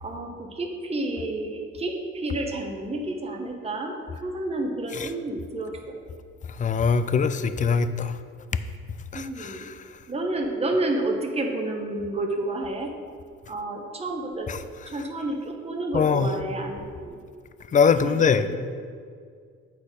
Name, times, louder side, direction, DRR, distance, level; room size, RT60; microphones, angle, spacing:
voice 1, 0.0-6.0 9.1-9.7 10.1-12.9 13.5-14.5 14.9-17.2 18.0-18.5, right 2 dB, 20° right, 2 dB, 0.9 m, -30 dB
voice 2, 6.6-8.1 9.1-9.7 14.5-14.6 15.9-16.3 17.7-18.4, left 6 dB, 25° left, 12 dB, 0.4 m, -22 dB
8.2 x 4.2 x 4.9 m, 2.1 s
cardioid pair, 90°, 30 cm